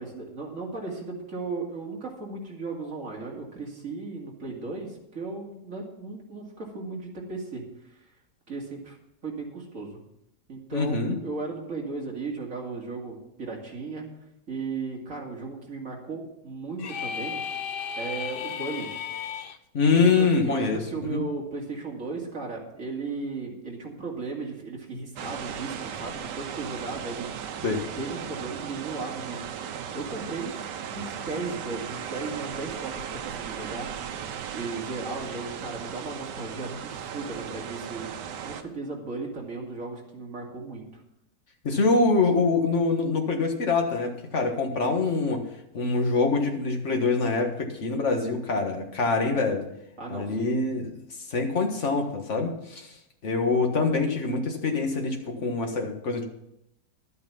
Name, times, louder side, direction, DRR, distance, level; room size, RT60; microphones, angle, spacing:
voice 1, 0.0-7.6 8.5-9.0 9.2-9.9 10.5-14.1 14.5-17.4 18.0-18.9 19.9-27.4 28.0-29.4 29.9-30.6 30.9-33.9 34.5-38.2 38.4-41.0 50.0-50.6, right 3 dB, 50° right, -1 dB, 2.8 m, -36 dB
voice 2, 10.7-11.2 19.7-21.2 27.6-27.8 41.6-45.4 45.7-49.7 50.1-50.9 51.3-52.9 53.2-56.2, left 4 dB, 45° left, 3 dB, 1.8 m, -25 dB
sound 1, 16.8-19.6, left 7 dB, 80° left, 0.5 m, -34 dB
sound 2, 25.2-38.6, right 8 dB, 85° right, 1.4 m, -37 dB
12.0 x 8.5 x 5.7 m, 0.80 s
omnidirectional pair, 1.8 m